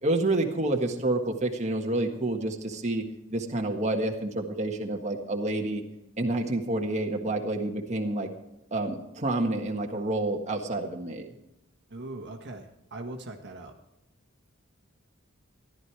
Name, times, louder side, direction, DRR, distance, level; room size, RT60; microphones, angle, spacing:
voice 1, 0.0-3.0 3.3-5.8 6.2-8.3 8.7-11.3, right 2 dB, 35° right, 1 dB, 1.6 m, -28 dB
voice 2, 11.9-13.7, right 2 dB, 55° right, 4 dB, 1.5 m, -40 dB
14.5 x 12.0 x 4.8 m, 0.90 s
head